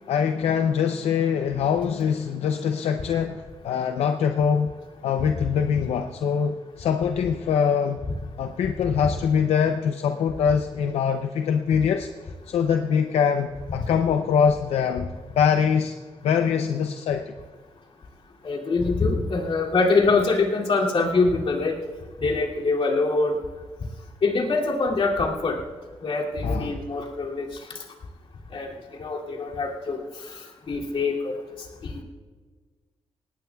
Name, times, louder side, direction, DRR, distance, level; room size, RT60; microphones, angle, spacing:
voice 1, 0.1-4.7 5.0-8.0 8.4-16.0 16.2-17.3 26.4-26.8, left 7 dB, 90° left, 7 dB, 0.6 m, -23 dB
voice 2, 18.4-21.8 22.2-23.4 24.2-25.6 26.0-27.5 28.5-28.7 29.0-30.0 30.7-31.4 31.8-31.9, left 3 dB, 60° left, -2 dB, 2.6 m, -24 dB
20.0 x 17.5 x 2.3 m, 1.4 s
cardioid pair, 75°, 11 cm